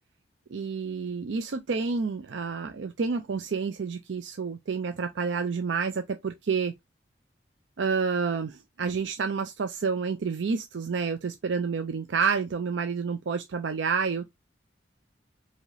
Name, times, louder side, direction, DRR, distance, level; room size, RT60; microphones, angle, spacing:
voice 1, 0.5-6.7 7.8-14.3, right 5 dB, 80° right, 0.5 m, -29 dB
4.7 x 2.8 x 2.7 m
head